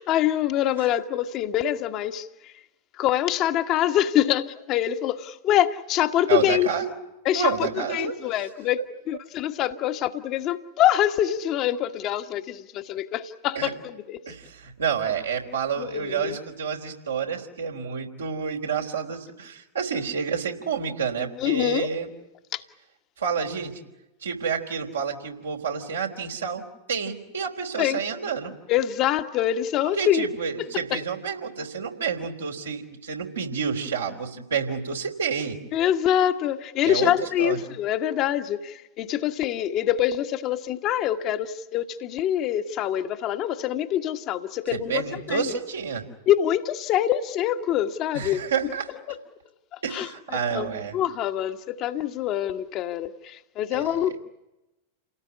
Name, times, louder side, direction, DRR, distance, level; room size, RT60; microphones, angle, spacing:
voice 1, 0.0-2.5 3.0-6.7 7.2-14.2 15.8-16.4 21.4-21.9 22.5-22.6 27.8-28.0 28.7-30.2 30.6-31.0 35.7-45.5 46.3-48.4 49.1-49.2 49.9-50.7 50.9-54.2, left 11 dB, 35° left, 1.5 m, -25 dB
voice 2, 6.3-6.9 7.3-8.1 8.8-8.9 13.6-13.7 14.3-22.1 23.2-23.8 24.2-26.6 26.9-28.5 30.0-35.6 36.8-37.6 44.7-46.1 48.1-48.9 49.8-51.0 53.7-54.2, right 6 dB, 70° right, 3.8 m, -29 dB
29.5 x 18.5 x 9.7 m
figure-of-eight pair, 90°, 0 cm